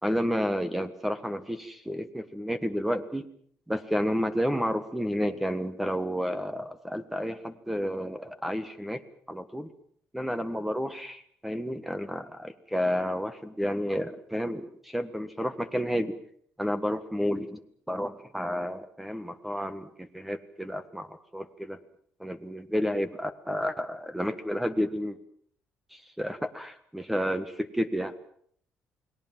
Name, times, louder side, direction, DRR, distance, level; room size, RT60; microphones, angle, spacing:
voice 1, 0.0-3.3 3.7-9.0 9.3-9.7 10.1-16.2 16.6-17.6 17.9-21.8 22.2-25.2 25.9-28.1, equal, 5° right, 11 dB, 1.6 m, -31 dB
29.5 x 19.5 x 7.5 m, 0.64 s
cardioid pair, 120°, 5 cm